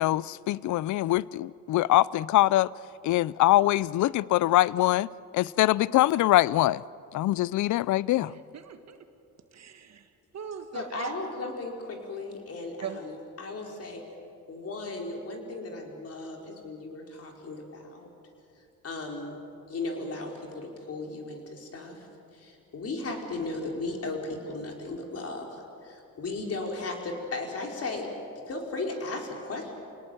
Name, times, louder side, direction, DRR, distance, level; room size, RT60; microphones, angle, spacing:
voice 1, 0.0-2.7 3.0-5.1 5.3-6.8 7.1-8.3, left 15 dB, 60° left, 0.5 m, -23 dB
voice 2, 8.2-9.0 9.5-11.1 12.8-13.0, right 7 dB, 50° right, 1.6 m, -40 dB
voice 3, 10.7-14.0 14.5-18.1 18.8-19.4 19.7-22.0 22.3-28.1 28.5-29.7, left 3 dB, 45° left, 4.8 m, -36 dB
29.0 x 18.5 x 9.2 m
cardioid pair, 120°, 33 cm